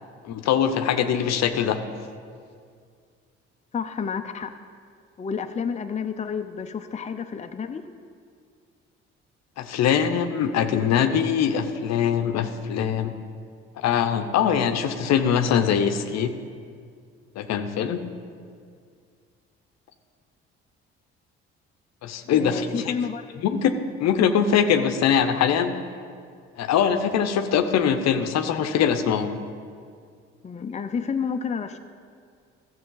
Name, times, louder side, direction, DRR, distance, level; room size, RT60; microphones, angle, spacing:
voice 1, 0.2-1.8 9.6-13.1 13.8-16.4 17.4-18.0 22.0-22.7 23.4-25.8 26.6-29.4, left 8 dB, 65° left, 8 dB, 0.8 m, -22 dB
voice 2, 3.7-4.5 5.2-7.8 22.3-23.3 30.4-31.8, left 6 dB, 25° left, 7 dB, 0.6 m, -30 dB
13.0 x 7.4 x 3.9 m, 2.2 s
hypercardioid pair, 60°, 29 cm